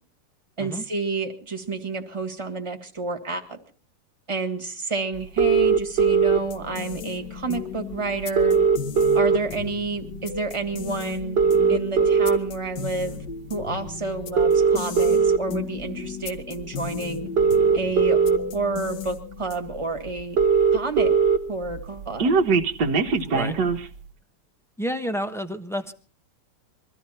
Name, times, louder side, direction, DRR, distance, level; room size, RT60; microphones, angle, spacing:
voice 1, 0.6-3.6 4.3-8.6 9.1-11.4 11.7-13.2 13.5-17.3 17.7-20.4 20.7-21.1 21.5-22.4, right 3 dB, 15° right, 5 dB, 1.8 m, -30 dB
sound 1, 5.4-6.4 7.6-7.7 7.9-8.0 8.2-9.7 10.1-10.4 11.2-12.4 13.1-13.3 14.2-15.4 16.6-16.7 17.2-18.4 19.1-19.2 19.4-19.5 19.8-19.9 20.1-21.4 21.7-23.9, right 5 dB, 70° right, 1.8 m, -19 dB
sound 2, 6.4-19.8, left 7 dB, 70° left, 1.7 m, -36 dB
voice 2, 24.8-25.9, equal, ahead, 8 dB, 0.7 m, -29 dB
22.5 x 13.5 x 4.3 m, 0.37 s
omnidirectional pair, 1.9 m